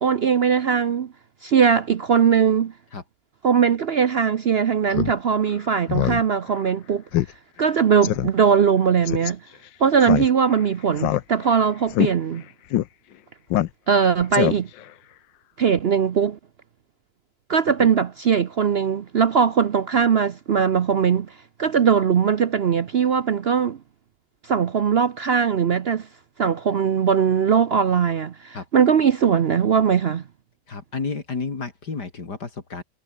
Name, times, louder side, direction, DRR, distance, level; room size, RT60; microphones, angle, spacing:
voice 1, 0.0-1.1 1.4-2.7 3.4-7.0 7.6-9.4 9.8-12.4 13.9-14.7 15.6-16.4 17.5-21.3 21.6-23.8 24.4-26.1 26.4-30.2, right 7 dB, 60° right, 0.6 m, -20 dB
Speech synthesizer, 4.9-5.1 5.5-5.6 5.9-6.2 6.5-6.6 7.1-7.3 7.6-7.7 8.0-8.3 9.1-9.3 10.0-10.6 11.0-11.6 11.9-12.1 12.7-12.9 13.5-14.0 14.3-14.8, left 13 dB, 85° left, 1.5 m, -23 dB
voice 2, 30.7-32.8, left 4 dB, 65° left, 3.7 m, -31 dB
omnidirectional pair, 1.9 m